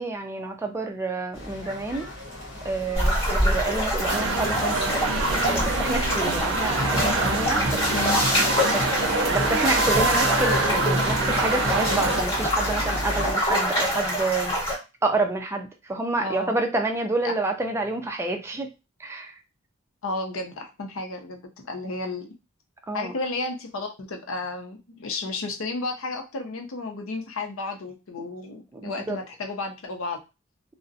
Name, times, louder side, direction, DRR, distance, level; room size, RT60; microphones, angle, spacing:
voice 1, 0.0-2.1 2.6-8.1 8.7-8.9 9.3-14.6 15.0-18.7 19.0-19.4 22.9-23.1 28.7-29.2, right 2 dB, 15° right, 0.3 m, -28 dB
sound 1, 1.3-13.3, left 1 dB, 60° left, 0.9 m, -36 dB
sound 2, 2.9-14.7, equal, 25° left, 1.3 m, -25 dB
sound 3, 4.1-12.2, right 3 dB, 60° right, 0.5 m, -25 dB
voice 2, 7.9-8.2 16.2-16.6 17.2-17.3 20.0-22.3 22.9-30.2, left 3 dB, 75° left, 0.6 m, -32 dB
2.5 x 2.0 x 2.5 m
head